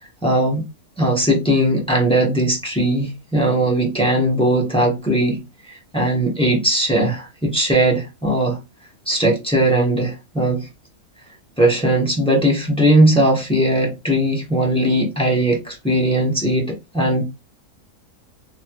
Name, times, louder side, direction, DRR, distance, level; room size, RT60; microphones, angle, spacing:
voice 1, 0.2-0.6 1.0-5.4 5.7-8.6 9.1-10.7 11.6-17.2, right 1 dB, 5° left, 0.6 m, -19 dB
3.1 x 3.1 x 2.2 m
omnidirectional pair, 1.6 m